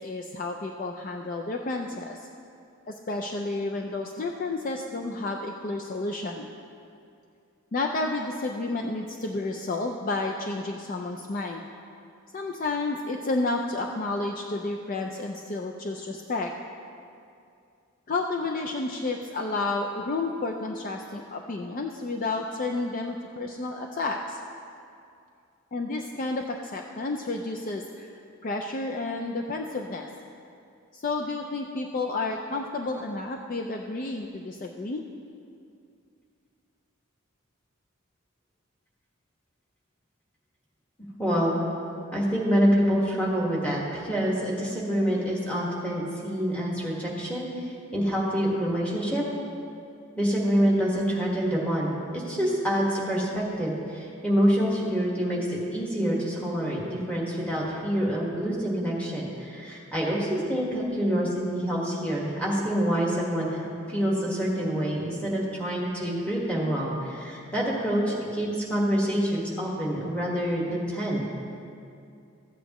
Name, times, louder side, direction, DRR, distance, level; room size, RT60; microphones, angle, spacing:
voice 1, 0.0-2.3 2.9-6.5 7.7-11.6 12.3-16.5 18.1-24.4 25.7-28.1 28.4-30.1 30.9-35.0, left 3 dB, 40° left, 2 dB, 0.4 m, -31 dB
voice 2, 41.2-41.6 42.1-49.2 50.2-71.2, equal, 5° left, -5 dB, 1.5 m, -26 dB
14.0 x 8.3 x 3.0 m, 2.5 s
head